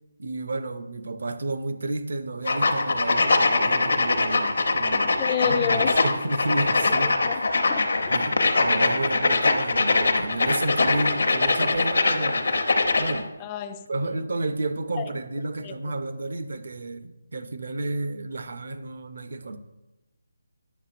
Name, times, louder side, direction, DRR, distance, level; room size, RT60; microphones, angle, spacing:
voice 1, 0.2-5.1 5.5-7.1 8.1-12.5 13.0-13.3 13.9-19.6, right 2 dB, 60° right, 0.6 m, -31 dB
sound 1, 2.5-13.2, left 3 dB, 65° left, 0.7 m, -22 dB
voice 2, 4.9-5.9 6.9-8.2 13.4-14.3 15.0-15.1 15.6-15.9, left 9 dB, 20° left, 0.3 m, -31 dB
9.1 x 6.4 x 2.5 m
figure-of-eight pair, 155°, 0 cm